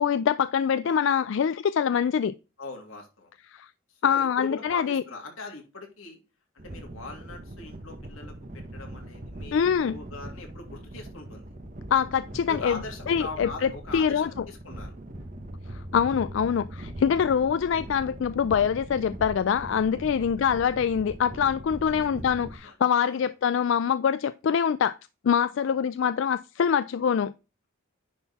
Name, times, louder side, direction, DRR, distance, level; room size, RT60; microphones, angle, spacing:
voice 1, 0.0-2.3 3.5-3.7 4.0-5.0 9.5-10.0 11.9-12.8 13.1-14.3 15.7-25.0 25.2-27.3, left 7 dB, 65° left, 0.3 m, -24 dB
voice 2, 2.6-3.3 3.9-6.2 6.5-11.5 12.5-15.0 20.2-20.4 22.5-23.3 25.6-25.8, left 3 dB, 90° left, 2.6 m, -41 dB
sound 1, 6.6-22.6, right 1 dB, 40° right, 1.1 m, -41 dB
sound 2, 12.3-17.9, equal, 70° right, 3.4 m, -47 dB
10.0 x 3.9 x 4.1 m
head